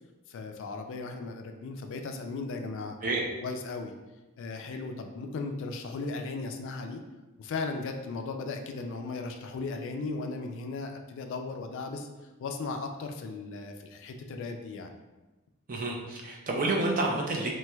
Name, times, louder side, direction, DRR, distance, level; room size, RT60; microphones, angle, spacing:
voice 1, 0.3-2.9 3.4-3.9 4.4-7.0 7.4-12.1 12.4-14.9, left 3 dB, 60° left, 5 dB, 0.3 m, -36 dB
voice 2, 15.7-17.5, right 2 dB, 40° right, -1 dB, 0.5 m, -29 dB
3.2 x 3.1 x 2.2 m, 1.1 s
head